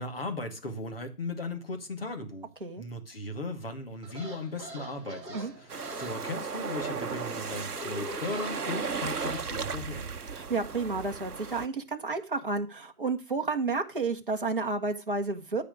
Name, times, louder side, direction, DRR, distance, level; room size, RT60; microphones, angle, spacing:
voice 1, 0.0-2.5 2.8-10.1, left 2 dB, 35° left, 2.0 m, -37 dB
sound 1, 4.0-9.5, right 1 dB, 15° right, 3.2 m, -44 dB
sound 2, 5.7-11.7, right 5 dB, 65° right, 1.0 m, -35 dB
voice 2, 10.3-15.6, right 3 dB, 30° right, 1.3 m, -31 dB
13.5 x 5.0 x 6.6 m
figure-of-eight pair, 170°, 50 cm